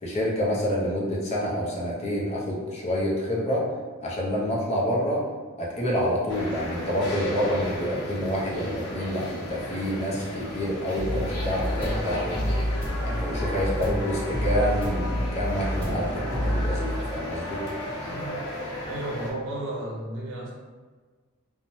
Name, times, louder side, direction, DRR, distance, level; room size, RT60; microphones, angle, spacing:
voice 1, 0.0-3.7 4.0-5.2 5.6-12.6 13.0-17.6, equal, 30° left, -5 dB, 0.5 m, -28 dB
sound 1, 6.3-19.3, left 1 dB, 75° left, 0.8 m, -35 dB
sound 2, 11.0-17.3, equal, 5° left, 1.2 m, -29 dB
voice 2, 18.0-18.4 18.8-20.5, right 1 dB, 60° right, -3 dB, 0.7 m, -33 dB
2.6 x 2.1 x 3.0 m, 1.5 s
head